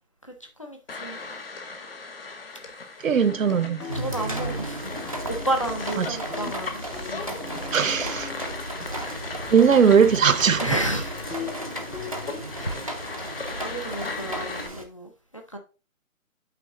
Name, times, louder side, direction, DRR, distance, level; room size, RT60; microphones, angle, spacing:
voice 1, 0.2-1.2 3.9-8.4 8.8-9.3 10.6-11.3 12.2-15.6, right 1 dB, 25° left, 0.5 m, -33 dB
sound 1, 0.9-14.7, left 4 dB, 45° left, 1.0 m, -38 dB
voice 2, 3.0-3.8 6.0-6.1 7.7-8.3 9.5-10.6, right 7 dB, 65° right, 0.8 m, -19 dB
sound 2, 3.2-6.0 6.3-8.9 9.4-9.5 10.1-10.2 10.6-12.2, left 5 dB, 85° left, 2.0 m, -40 dB
sound 3, 3.9-14.8, right 1 dB, 25° right, 0.5 m, -35 dB
8.5 x 3.6 x 3.6 m
hypercardioid pair, 165°, 42 cm